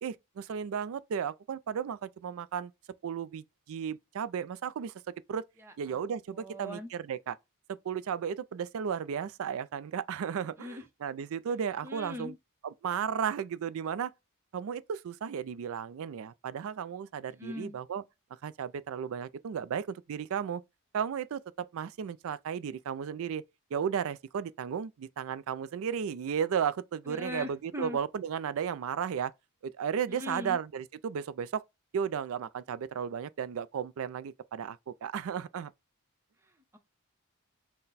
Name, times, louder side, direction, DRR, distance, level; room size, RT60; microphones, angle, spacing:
voice 1, 0.0-2.7 3.0-4.9 5.3-5.4 5.8-7.4 7.7-12.3 12.6-14.1 14.5-18.0 18.4-20.6 20.9-23.4 23.7-29.3 29.6-31.6 31.9-35.7, right 7 dB, 65° right, 0.3 m, -34 dB
voice 2, 5.6-6.0 6.3-6.9 10.6-10.8 11.8-12.4 17.4-17.8 27.1-28.0 30.1-30.6 36.4-36.8, left 2 dB, 10° right, 0.7 m, -41 dB
5.8 x 2.2 x 4.0 m
head